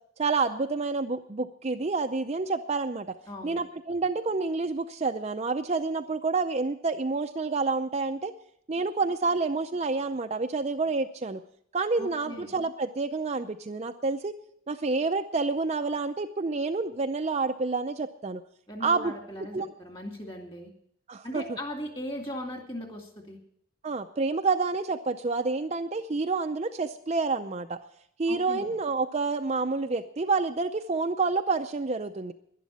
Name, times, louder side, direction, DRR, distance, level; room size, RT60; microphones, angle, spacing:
voice 1, 0.2-3.2 3.4-8.3 8.7-11.4 11.7-14.3 14.7-18.4 18.8-19.1 19.5-19.7 21.1-21.4 23.8-27.8 28.2-32.3, right 3 dB, 30° right, 7 dB, 0.5 m, -28 dB
voice 2, 3.3-3.7 12.0-12.5 18.7-20.7 21.2-23.4 28.2-28.7, equal, 25° left, 4 dB, 2.4 m, -38 dB
11.5 x 11.0 x 8.4 m, 0.69 s
head